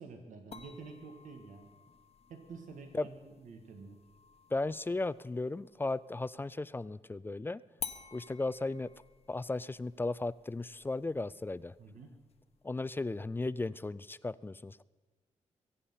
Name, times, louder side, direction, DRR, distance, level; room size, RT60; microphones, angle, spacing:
voice 1, 0.0-1.7 2.3-4.0 11.8-12.1, right 4 dB, 80° right, 5 dB, 1.7 m, -49 dB
sound 1, 0.5-6.1 7.8-12.8, left 6 dB, 55° left, 1.0 m, -51 dB
voice 2, 4.5-7.6 8.1-8.9 9.3-11.7 12.6-14.8, left 2 dB, 15° left, 18 dB, 0.3 m, -35 dB
22.5 x 8.5 x 5.6 m, 1.3 s
cardioid pair, 95°, 13 cm